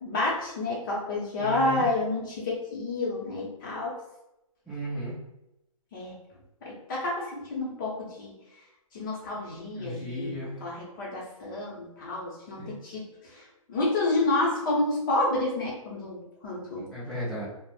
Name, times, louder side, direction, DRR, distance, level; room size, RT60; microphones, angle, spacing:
voice 1, 0.0-3.9 5.9-6.1 6.6-8.3 8.9-16.9, left 2 dB, 35° left, -5 dB, 0.7 m, -29 dB
voice 2, 1.4-1.8 4.7-5.1 9.8-10.5 12.6-12.7 16.7-17.5, equal, ahead, -9 dB, 0.4 m, -35 dB
2.4 x 2.0 x 3.2 m, 0.91 s
hypercardioid pair, 160°, 18 cm